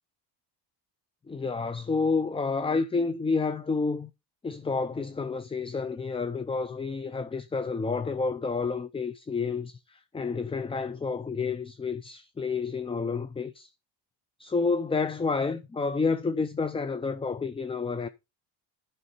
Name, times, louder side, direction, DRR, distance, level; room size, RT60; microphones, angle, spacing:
voice 1, 1.3-4.1 4.4-13.7 14.4-18.1, left 4 dB, 15° left, 0.5 m, -29 dB
11.0 x 5.6 x 4.1 m
cardioid pair, 110°, 45 cm